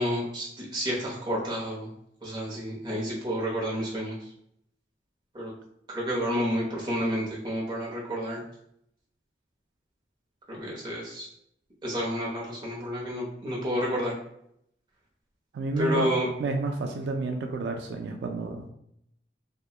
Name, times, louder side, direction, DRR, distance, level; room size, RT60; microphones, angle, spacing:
voice 1, 0.0-1.9 2.2-4.2 5.3-5.5 5.9-8.4 10.5-11.3 11.8-14.1 15.8-16.3, equal, 25° right, -4 dB, 0.7 m, -30 dB
voice 2, 15.5-16.1 16.4-18.7, right 3 dB, 80° right, 3 dB, 0.3 m, -30 dB
2.8 x 2.1 x 2.3 m, 0.72 s
head